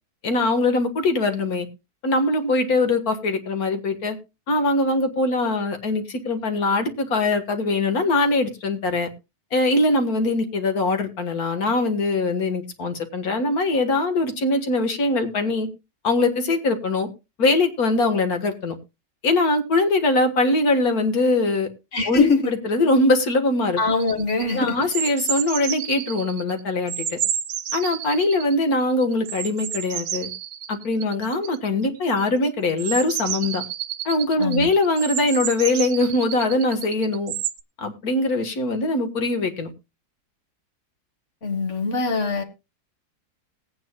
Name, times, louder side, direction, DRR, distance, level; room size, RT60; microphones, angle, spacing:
voice 1, 0.2-1.7 2.0-4.2 4.5-9.1 9.5-15.7 16.0-17.1 17.4-18.7 19.2-21.7 22.1-23.8 24.5-27.2 27.7-30.3 30.7-33.6 34.1-37.3 37.8-39.7, left 2 dB, 65° left, 1.9 m, -22 dB
voice 2, 21.9-22.5 23.8-24.8 34.4-34.7 41.4-42.4, left 3 dB, 50° left, 1.9 m, -23 dB
sound 1, 24.0-26.6 26.9-37.6, right 10 dB, 85° right, 1.3 m, -30 dB
20.0 x 8.8 x 2.2 m
omnidirectional pair, 1.7 m